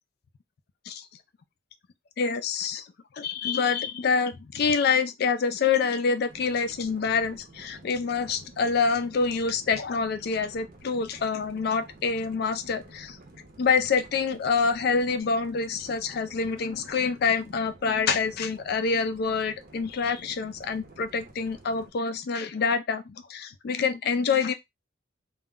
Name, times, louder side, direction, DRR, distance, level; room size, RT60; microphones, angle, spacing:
voice 1, 2.2-2.9 3.1-13.2 13.6-24.5, left 5 dB, 50° left, 0.3 m, -26 dB
sound 1, 6.3-21.9, right 2 dB, 45° right, 0.6 m, -51 dB
2.3 x 2.0 x 3.5 m
head